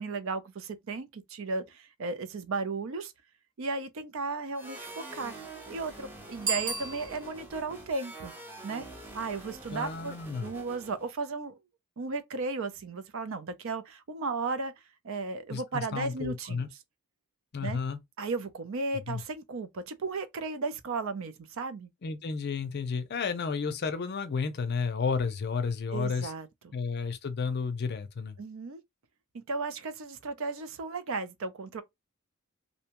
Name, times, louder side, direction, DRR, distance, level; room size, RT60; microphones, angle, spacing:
voice 1, 0.0-3.1 3.6-8.3 8.6-8.9 9.1-11.6 12.0-14.7 15.0-16.7 17.6-17.8 18.2-21.9 25.9-26.8 28.4-28.8 29.3-31.8, right 3 dB, 65° right, 0.5 m, -35 dB
sound 1, 4.5-11.1, right 2 dB, 10° right, 0.6 m, -46 dB
Bicycle bell, 6.4-7.6, right 4 dB, 80° right, 1.5 m, -34 dB
voice 2, 9.7-10.5 15.5-16.7 17.5-18.0 18.9-19.2 22.0-26.3 26.7-28.4, left 5 dB, 50° left, 0.5 m, -32 dB
2.7 x 2.1 x 2.8 m
head